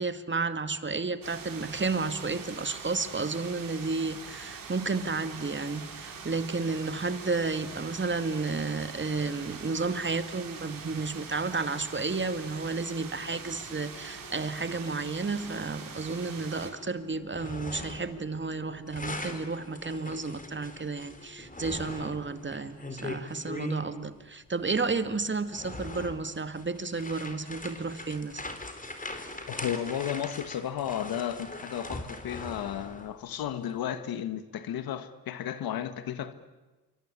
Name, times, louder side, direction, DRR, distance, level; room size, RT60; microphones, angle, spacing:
voice 1, 0.0-28.4, right 4 dB, 30° right, 2.2 m, -32 dB
sound 1, 1.2-16.7, right 5 dB, 65° right, 4.9 m, -43 dB
sound 2, 12.9-23.6, left 3 dB, 45° left, 5.4 m, -56 dB
sound 3, 17.1-18.2 18.5-23.8 24.7-24.8 25.3-33.1, left 2 dB, 20° left, 4.2 m, -41 dB
voice 2, 29.5-36.3, left 10 dB, 80° left, 1.6 m, -33 dB
27.0 x 24.5 x 8.9 m
supercardioid pair, 55°, 36 cm